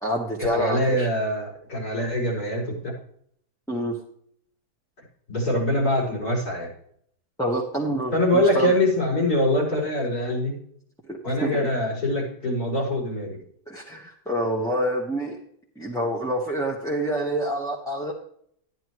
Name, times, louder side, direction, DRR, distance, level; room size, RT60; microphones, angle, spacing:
voice 1, 0.0-1.1 3.7-3.9 7.4-8.7 11.1-11.7 13.7-15.4 15.8-18.1, right 1 dB, ahead, -3 dB, 1.2 m, -27 dB
voice 2, 0.5-2.9 5.3-6.7 8.1-10.6 11.2-13.4, left 1 dB, 65° left, -5 dB, 5.4 m, -24 dB
12.5 x 10.5 x 3.1 m, 0.66 s
omnidirectional pair, 1.8 m